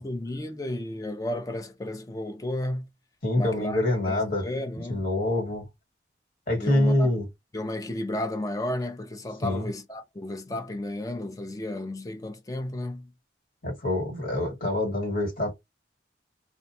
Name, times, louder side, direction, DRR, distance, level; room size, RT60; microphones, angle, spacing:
voice 1, 0.0-2.9 3.4-5.0 6.5-7.1 7.5-13.1, left 1 dB, 20° left, 0.4 m, -33 dB
voice 2, 3.2-4.5 4.9-5.6 6.5-7.2 9.4-9.7 13.6-15.5, left 1 dB, 50° left, 1.6 m, -25 dB
2.4 x 2.2 x 2.7 m
head